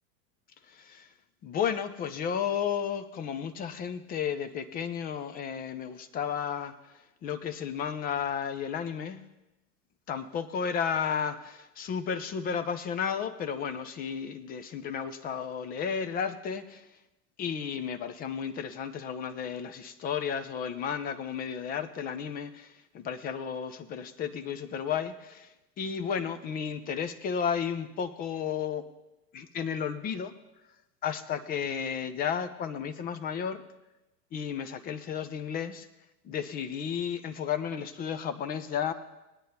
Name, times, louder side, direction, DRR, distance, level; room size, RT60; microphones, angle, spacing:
voice 1, 0.7-1.1 1.4-9.3 10.1-17.0 17.4-28.8 29.3-30.3 31.0-33.6 34.3-35.9 36.2-38.9, left 7 dB, 20° left, 12 dB, 0.5 m, -33 dB
20.5 x 9.4 x 2.8 m, 1.0 s
figure-of-eight pair, 90°, 49 cm